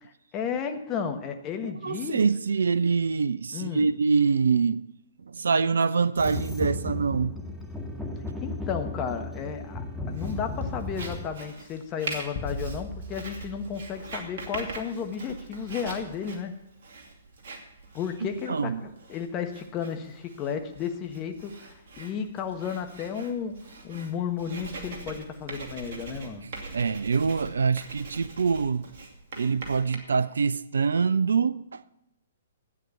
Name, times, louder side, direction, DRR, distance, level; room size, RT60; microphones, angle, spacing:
voice 1, 0.3-2.2 3.5-3.9 8.4-16.5 17.9-23.6 23.8-26.4, left 7 dB, 25° left, 1.4 m, -33 dB
voice 2, 1.8-4.8 5.2-7.4 18.2-18.8 26.7-28.8 29.4-31.8, right 5 dB, 70° right, 0.5 m, -25 dB
sound 1, 6.2-11.2, left 2 dB, 5° right, 2.0 m, -35 dB
Writing, 10.1-30.0, right 3 dB, 55° right, 2.6 m, -42 dB
sound 2, 12.3-14.8, left 2 dB, 45° left, 1.5 m, -39 dB
12.5 x 9.1 x 5.7 m
figure-of-eight pair, 120°, 0 cm